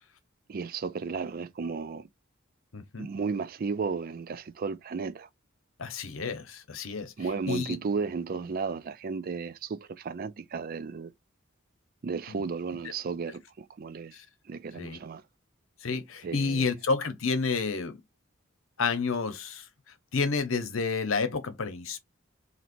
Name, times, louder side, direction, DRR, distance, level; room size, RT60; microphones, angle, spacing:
voice 1, 0.5-2.1 3.0-5.3 7.2-11.1 12.0-14.1 14.5-15.2 16.2-16.7, right 5 dB, 45° right, 0.4 m, -34 dB
voice 2, 2.7-3.1 5.8-7.1 7.5-7.8 12.3-12.4 14.1-14.2 14.8-15.0 15.8-18.0 18.8-19.7 20.1-22.0, left 4 dB, 80° left, 0.9 m, -30 dB
4.3 x 2.9 x 2.5 m
head